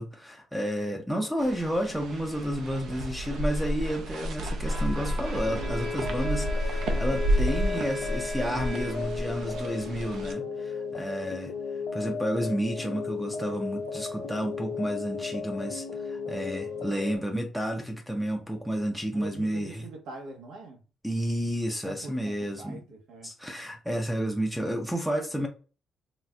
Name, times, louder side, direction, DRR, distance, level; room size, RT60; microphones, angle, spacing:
voice 1, 0.0-11.5 11.9-19.8 21.0-22.8 23.2-25.5, equal, ahead, 0.4 m, -31 dB
sound 1, 1.4-10.3, equal, 70° right, 0.5 m, -31 dB
Bowed string instrument, 4.6-9.3, right 2 dB, 45° right, 1.5 m, -42 dB
sound 2, 5.5-17.2, left 5 dB, 85° left, 0.6 m, -35 dB
voice 2, 19.1-20.8 21.7-23.3, right 2 dB, 90° right, 1.0 m, -43 dB
4.0 x 2.4 x 2.2 m
cardioid pair, 175°, 0 cm